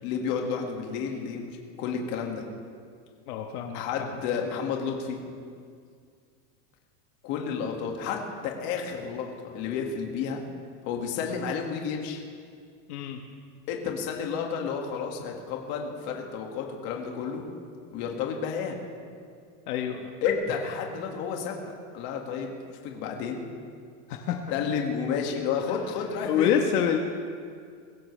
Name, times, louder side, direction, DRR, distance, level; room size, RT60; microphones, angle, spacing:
voice 1, 0.0-2.4 3.7-5.2 7.2-10.4 10.9-12.2 13.7-17.4 17.9-18.8 20.2-22.5 22.8-23.5 24.5-26.5, left 6 dB, 40° left, 1 dB, 2.1 m, -31 dB
voice 2, 3.3-3.8 12.9-13.2 19.7-20.1 24.1-24.4 26.3-27.0, left 9 dB, 65° left, 3 dB, 1.4 m, -26 dB
21.5 x 16.5 x 3.3 m, 2.2 s
supercardioid pair, 170°, 48 cm